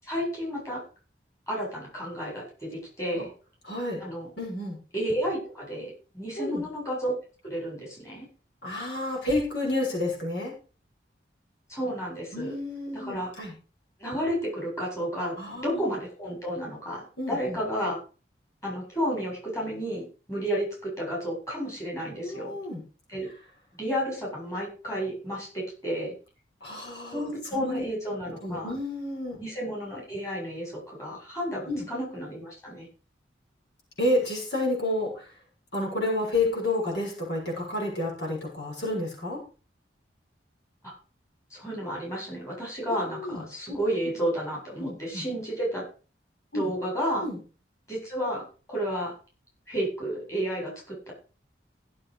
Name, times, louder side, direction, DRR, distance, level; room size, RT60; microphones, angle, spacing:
voice 1, 0.0-0.8 1.5-3.3 4.0-4.3 4.9-7.1 7.4-8.3 11.7-12.5 12.9-13.3 14.0-15.4 15.6-18.0 18.6-22.6 23.1-23.3 23.8-26.1 27.1-28.7 29.4-32.9 40.8-40.9 41.5-45.9 46.5-47.3 47.9-49.1 49.7-51.1, equal, 15° left, -4 dB, 7.7 m, -31 dB
voice 2, 3.6-4.0 4.4-4.8 6.4-6.7 8.6-10.5 12.3-13.5 15.4-15.8 17.2-17.6 22.2-22.8 26.6-27.8 28.4-29.4 31.6-31.9 34.0-35.3 35.7-39.4 43.1-43.4 43.7-43.8 44.8-45.2 46.5-46.7 47.2-47.4, left 1 dB, 70° left, -2 dB, 6.8 m, -30 dB
16.0 x 7.8 x 5.1 m, 0.36 s
head